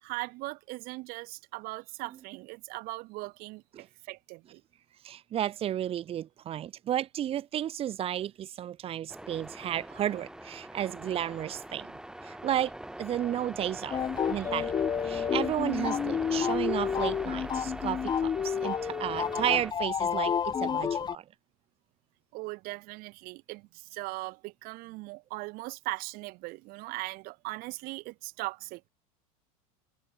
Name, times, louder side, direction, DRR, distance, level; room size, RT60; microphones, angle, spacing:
voice 1, 0.0-4.6 14.3-14.4 22.3-28.9, right 23 dB, 55° right, 2.4 m, -39 dB
voice 2, 5.0-11.9 12.2-12.7 13.0-14.0 14.3-14.7 15.0-21.2, right 11 dB, 30° right, 1.0 m, -32 dB
sound 1, 9.1-19.7, right 1 dB, 5° right, 3.9 m, -42 dB
sound 2, 13.9-21.2, left 7 dB, 25° left, 1.3 m, -30 dB
open air
supercardioid pair, 115°, 18 cm